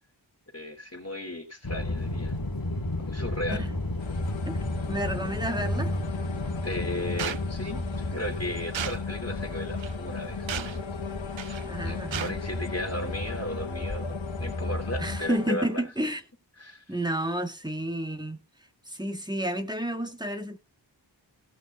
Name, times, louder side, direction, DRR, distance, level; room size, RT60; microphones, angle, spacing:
voice 1, 0.5-2.4 3.1-3.6 6.6-10.9 11.8-15.8 16.6-17.0, left 1 dB, 35° left, 3.7 m, -35 dB
sound 1, 1.6-15.2, left 1 dB, 50° left, 2.2 m, -33 dB
sound 2, 4.0-15.5, left 7 dB, 85° left, 1.0 m, -38 dB
voice 2, 4.9-5.9 11.6-12.4 15.0-16.2 16.9-18.4 18.9-20.6, right 1 dB, 10° right, 1.8 m, -31 dB
sound 3, 7.2-7.4 8.7-9.0 9.8-9.9 10.5-10.8 11.4-11.7 12.1-12.3, right 9 dB, 80° right, 0.6 m, -34 dB
17.5 x 6.2 x 4.0 m
wide cardioid pair, 60°, 45 cm